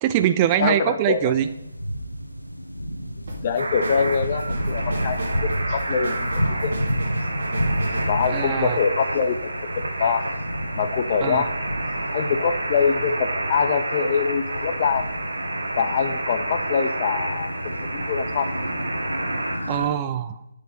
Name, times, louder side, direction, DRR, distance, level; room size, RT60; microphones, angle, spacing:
voice 1, 0.0-1.5 8.3-8.8 11.2-11.5 19.7-20.4, right 11 dB, 20° right, 10 dB, 0.3 m, -23 dB
voice 2, 0.6-1.3 3.4-5.2 5.7-6.8 8.1-10.3 10.8-11.5 12.1-15.1 15.8-17.5 17.9-18.5, left 6 dB, 35° left, 9 dB, 0.7 m, -24 dB
sound 1, 1.2-19.9, equal, 90° left, 0.9 m, -31 dB
sound 2, 3.3-9.6, right 2 dB, 45° right, 2.0 m, -36 dB
sound 3, 3.6-19.6, right 2 dB, 65° right, 1.6 m, -30 dB
11.0 x 5.1 x 5.2 m, 0.92 s
figure-of-eight pair, 140°, 0 cm